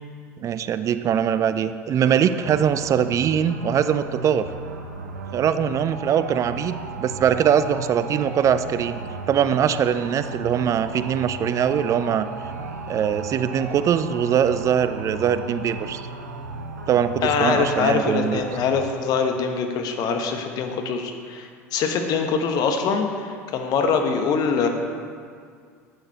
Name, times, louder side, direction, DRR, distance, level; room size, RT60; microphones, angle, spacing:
voice 1, 0.4-4.5 5.3-9.0 9.3-12.3 12.9-16.0 16.9-18.4, right 8 dB, 40° right, 12 dB, 0.5 m, -22 dB
sound 1, 2.0-18.7, right 2 dB, 80° right, 0.9 m, -35 dB
voice 2, 17.2-24.7, left 5 dB, 50° left, 4 dB, 1.3 m, -23 dB
11.5 x 8.8 x 4.3 m, 2.1 s
figure-of-eight pair, 70°, 8 cm